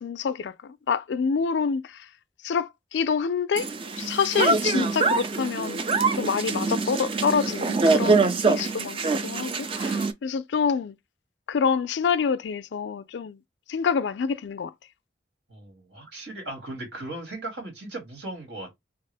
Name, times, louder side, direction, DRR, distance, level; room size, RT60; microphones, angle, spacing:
voice 1, 0.0-2.1 2.4-5.8 6.2-11.0 11.5-13.4 13.7-14.7, left 6 dB, 75° left, 0.4 m, -27 dB
sound 1, 3.6-10.1, right 3 dB, 30° right, 0.4 m, -24 dB
voice 2, 15.5-18.7, right 2 dB, 75° right, 2.1 m, -37 dB
3.5 x 2.4 x 3.3 m
head